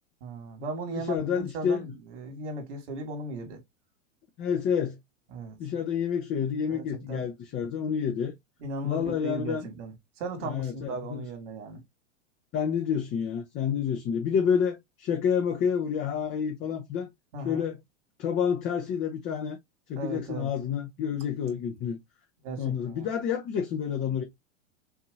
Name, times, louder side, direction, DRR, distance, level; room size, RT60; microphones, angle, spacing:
voice 1, 0.2-3.6 5.3-5.6 6.7-7.2 8.6-11.8 17.3-17.6 19.9-20.5 22.4-23.1, right 2 dB, 65° right, 2.4 m, -37 dB
voice 2, 0.9-1.9 4.4-5.0 5.6-8.3 8.8-9.6 10.4-11.2 12.5-17.1 17.4-17.8 18.2-19.6 19.9-22.0 22.6-24.2, left 7 dB, 30° left, 0.9 m, -29 dB
6.0 x 2.8 x 2.5 m
hypercardioid pair, 105°, 38 cm